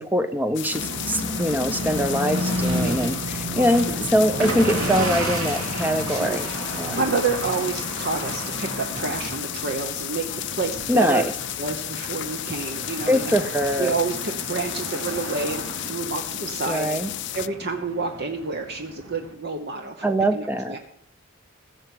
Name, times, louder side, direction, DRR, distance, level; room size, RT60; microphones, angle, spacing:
voice 1, 0.0-6.5 6.8-7.0 10.9-11.3 13.1-13.9 16.7-17.1 20.0-20.8, equal, 10° right, 10 dB, 0.7 m, -23 dB
sound 1, 0.5-17.5, left 15 dB, 55° left, 0.4 m, -33 dB
sound 2, 0.7-19.3, right 1 dB, 75° right, 2.6 m, -32 dB
voice 2, 3.5-4.1 5.0-5.1 6.1-6.5 6.9-11.2 11.6-13.4 13.8-17.0 17.3-20.8, right 4 dB, 50° right, 4 dB, 1.0 m, -29 dB
15.5 x 7.0 x 7.8 m, 0.69 s
head